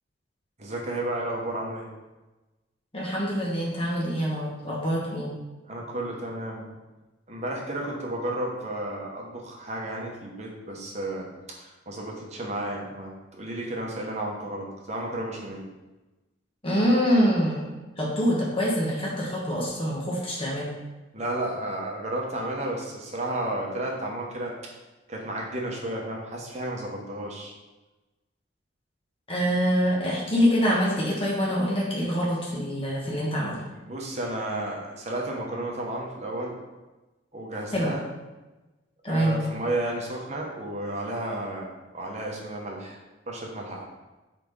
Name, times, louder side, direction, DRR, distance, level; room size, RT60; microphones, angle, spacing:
voice 1, 0.6-1.9 5.7-6.7 7.3-15.6 21.1-24.5 25.1-27.5 33.7-36.6 37.3-38.0 39.1-43.0 43.3-43.9, right 1 dB, 35° right, -2 dB, 1.1 m, -32 dB
voice 2, 2.9-5.3 16.6-20.7 29.3-33.6 37.7-37.9 39.0-39.4, equal, 30° left, -5 dB, 1.3 m, -25 dB
4.9 x 4.3 x 5.4 m, 1.1 s
head